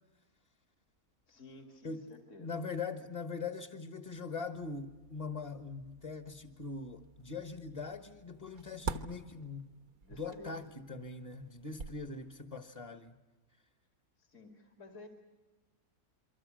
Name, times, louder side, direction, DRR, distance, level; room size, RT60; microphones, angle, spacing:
voice 1, 1.3-2.6 10.0-10.7 14.2-15.1, left 2 dB, 55° left, 3 dB, 2.8 m, -53 dB
voice 2, 2.4-9.7 10.1-13.1, left 4 dB, 25° left, 7 dB, 1.3 m, -42 dB
sound 1, 4.5-12.4, right 4 dB, 75° right, 1.7 m, -48 dB
28.5 x 24.0 x 6.3 m, 1.2 s
omnidirectional pair, 1.5 m